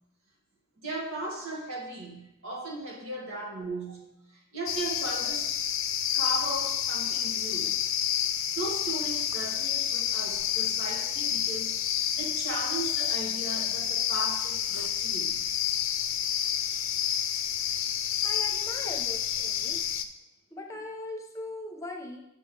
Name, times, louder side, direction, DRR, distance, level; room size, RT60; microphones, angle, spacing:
voice 1, 0.8-5.5 6.1-7.8 8.6-11.8 12.2-15.4, right 2 dB, 75° right, -1 dB, 2.1 m, -37 dB
sound 1, 4.7-20.0, left 9 dB, 70° left, 0.6 m, -29 dB
voice 2, 18.2-19.8 20.5-22.2, left 2 dB, 15° left, 2 dB, 0.9 m, -40 dB
8.6 x 7.0 x 3.4 m, 0.87 s
head